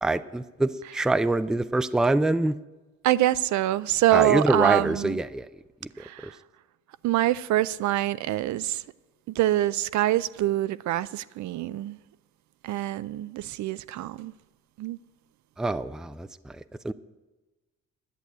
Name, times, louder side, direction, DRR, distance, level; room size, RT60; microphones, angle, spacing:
voice 1, 0.0-2.6 4.1-5.5 6.0-6.3 15.6-16.9, right 2 dB, ahead, 0.4 m, -25 dB
voice 2, 3.0-5.2 6.0-6.4 7.0-8.8 9.3-12.0 12.6-14.3 14.8-15.0, right 14 dB, 70° right, 0.5 m, -25 dB
11.0 x 7.7 x 8.1 m
cardioid pair, 90°, 30 cm